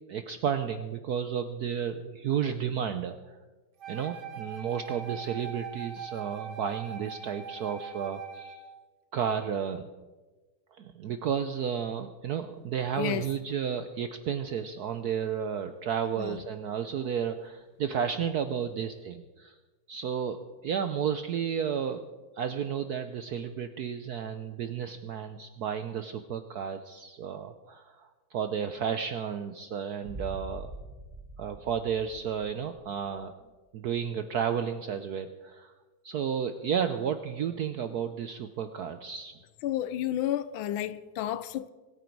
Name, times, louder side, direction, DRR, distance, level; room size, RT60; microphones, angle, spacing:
voice 1, 0.1-3.4 3.9-8.6 9.1-9.9 10.8-19.6 19.9-22.0 22.3-30.7 31.4-33.5 33.7-35.7 36.0-39.3, right 8 dB, 70° right, 0.9 m, -32 dB
Wind instrument woodwind instrument, 3.8-8.7, right 7 dB, 55° right, 1.8 m, -41 dB
voice 2, 13.0-13.3 16.2-16.4 39.6-41.7, left 12 dB, 75° left, 1.4 m, -31 dB
Boom, 30.0-33.0, right 1 dB, 20° right, 1.0 m, -44 dB
26.0 x 9.2 x 4.6 m
omnidirectional pair, 2.3 m